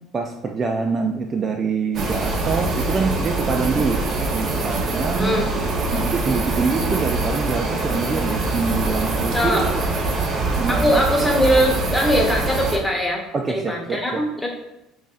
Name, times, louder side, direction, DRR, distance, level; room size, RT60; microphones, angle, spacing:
voice 1, 0.1-4.0 4.3-5.4 5.9-9.8 10.6-11.0 13.3-14.2, right 4 dB, 30° right, 3 dB, 0.3 m, -25 dB
sound 1, 1.9-12.8, right 3 dB, 45° right, 0.7 m, -24 dB
voice 2, 10.7-13.2 13.5-14.5, equal, 5° left, -1 dB, 0.9 m, -21 dB
3.0 x 2.7 x 3.7 m, 0.91 s
cardioid pair, 120°, 0 cm